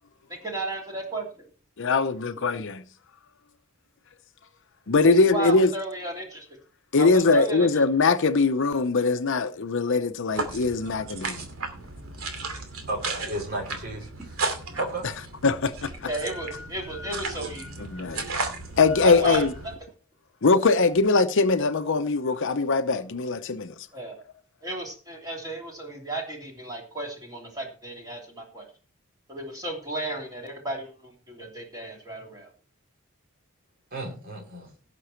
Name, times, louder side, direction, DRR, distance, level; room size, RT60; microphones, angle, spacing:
voice 1, 0.3-1.5 5.3-6.4 7.0-7.7 16.1-17.8 19.0-19.4 23.9-24.2 24.6-28.6 29.3-32.5, right 2 dB, 20° right, 2.9 m, -34 dB
voice 2, 1.8-2.8 4.9-5.7 6.9-11.5 15.4-16.1 17.8-18.2 18.8-19.5 20.4-23.7, left 3 dB, 60° left, 0.7 m, -22 dB
sound 1, 10.3-19.8, right 3 dB, 75° right, 2.7 m, -34 dB
voice 3, 12.9-14.4 14.8-15.0 33.9-34.7, right 2 dB, 45° right, 4.3 m, -33 dB
17.5 x 6.1 x 4.5 m
head